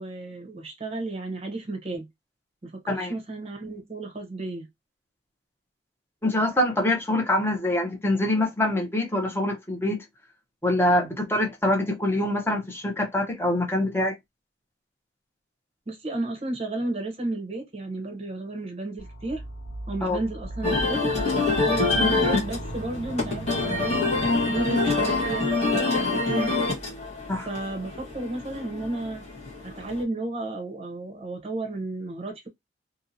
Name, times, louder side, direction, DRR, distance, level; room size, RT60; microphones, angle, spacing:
voice 1, 0.0-2.1 2.6-4.7 15.9-19.4 19.9-21.1 21.6-24.0 24.5-26.5 27.5-29.2 29.6-32.5, right 2 dB, 35° right, 0.7 m, -33 dB
voice 2, 6.2-10.0 10.6-14.2 20.0-20.2 27.3-27.5, left 1 dB, 15° left, 0.7 m, -24 dB
sound 1, 19.0-25.3, right 1 dB, 70° left, 1.3 m, -37 dB
sound 2, 20.6-30.0, left 3 dB, 35° left, 1.3 m, -26 dB
2.8 x 2.7 x 2.6 m
head